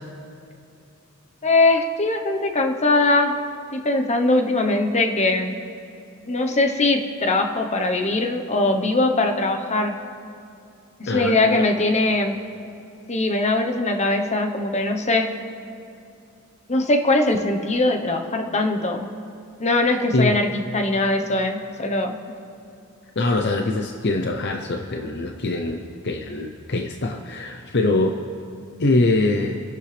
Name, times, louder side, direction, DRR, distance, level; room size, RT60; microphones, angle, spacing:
voice 1, 1.4-3.4 3.7-5.6 6.3-9.9 11.0-12.3 13.1-15.3 16.7-19.1 19.6-22.2, left 2 dB, 30° left, 4 dB, 1.1 m, -21 dB
voice 2, 11.1-11.7 20.1-20.3 23.2-28.2 28.8-29.6, left 2 dB, 50° left, 4 dB, 0.8 m, -23 dB
28.0 x 11.0 x 3.4 m, 2.6 s
head